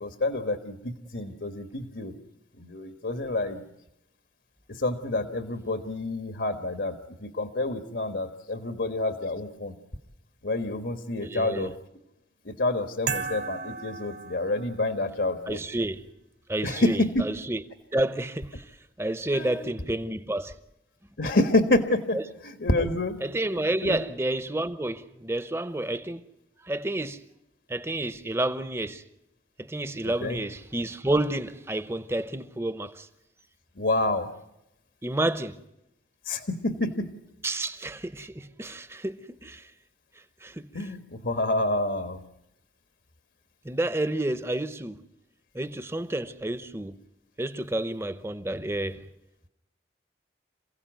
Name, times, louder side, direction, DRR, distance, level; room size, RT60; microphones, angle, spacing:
voice 1, 0.0-2.2 2.6-3.6 4.7-9.8 10.4-11.8 12.4-15.6 16.6-17.2 19.3-19.7 21.2-23.2 23.8-24.0 30.0-30.4 33.7-34.3 36.2-37.1 40.7-42.2, left 2 dB, 75° left, 1.5 m, -28 dB
voice 2, 11.2-11.7 15.5-16.0 16.5-17.6 17.9-18.6 19.0-20.5 22.1-22.2 23.2-26.2 26.6-27.2 27.7-29.0 29.6-33.1 35.0-35.6 37.4-39.6 40.4-40.7 43.6-45.0 45.5-47.0 47.4-49.0, right 1 dB, 15° right, 0.8 m, -30 dB
sound 1, 13.1-15.0, right 5 dB, 65° right, 1.9 m, -34 dB
27.5 x 16.5 x 9.2 m
head